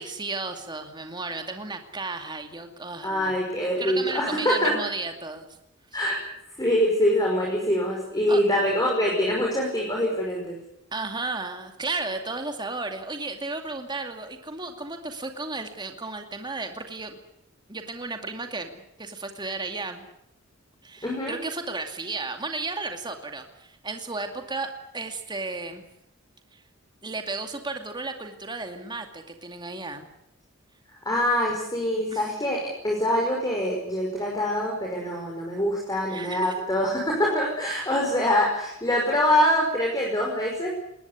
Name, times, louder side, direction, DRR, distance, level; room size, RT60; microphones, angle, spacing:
voice 1, 0.0-3.3 3.6-5.5 8.3-8.4 10.9-17.2 17.7-20.1 20.8-25.8 26.5-26.6 27.0-30.1 32.1-32.3 36.1-36.6, right 3 dB, 20° right, 5 dB, 2.4 m, -34 dB
voice 2, 3.0-4.8 5.9-6.2 6.6-10.6 21.0-21.4 31.1-40.7, left 1 dB, 20° left, -1 dB, 5.4 m, -24 dB
20.5 x 20.0 x 9.8 m, 0.77 s
head